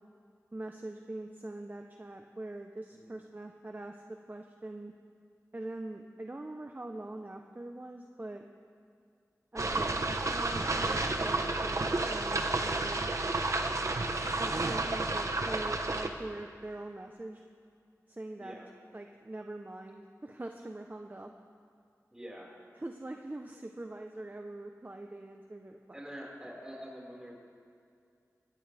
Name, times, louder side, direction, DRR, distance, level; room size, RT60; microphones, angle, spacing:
voice 1, 0.5-4.9 5.5-8.5 9.5-9.9 10.3-13.1 14.4-17.4 18.1-18.6 18.9-21.3 22.8-25.8, right 2 dB, 30° right, 3 dB, 0.9 m, -43 dB
sound 1, 9.6-16.1, right 2 dB, 60° right, 1.2 m, -31 dB
voice 2, 18.4-18.7 22.1-22.5 25.9-27.3, equal, 10° right, -4 dB, 5.2 m, -46 dB
22.5 x 16.0 x 3.5 m, 2.3 s
wide cardioid pair, 50°, 6 cm